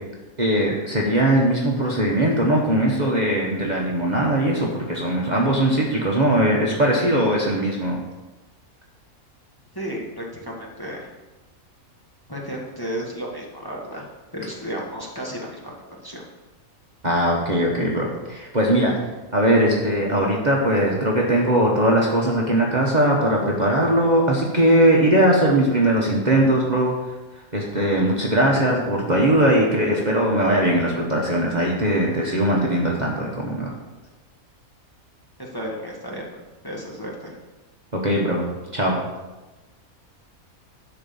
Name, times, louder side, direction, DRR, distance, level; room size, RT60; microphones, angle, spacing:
voice 1, 0.4-8.0 17.0-18.9 19.3-26.9 27.5-33.7 37.9-38.4 38.7-39.0, right 1 dB, 30° right, -3 dB, 1.3 m, -20 dB
voice 2, 9.7-11.1 12.3-14.1 14.3-15.7 16.0-16.2 35.4-36.3 36.6-37.4, equal, 15° left, -4 dB, 1.8 m, -33 dB
11.5 x 4.7 x 7.0 m, 1.1 s
omnidirectional pair, 1.5 m